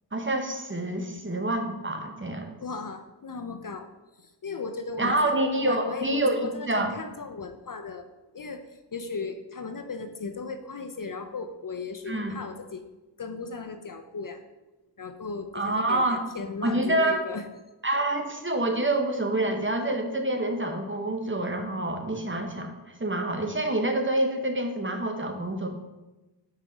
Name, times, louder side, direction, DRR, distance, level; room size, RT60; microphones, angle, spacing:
voice 1, 0.1-2.5 5.0-7.0 12.1-12.4 15.5-16.2 16.6-17.2 17.8-22.7 23.0-25.7, right 1 dB, 25° right, 4 dB, 0.8 m, -27 dB
voice 2, 2.6-3.9 4.2-8.1 8.3-8.6 8.9-12.8 13.2-14.4 15.0-17.4, left 4 dB, 50° left, 8 dB, 0.5 m, -36 dB
5.7 x 4.8 x 3.9 m, 1.1 s
wide cardioid pair, 45°, 43 cm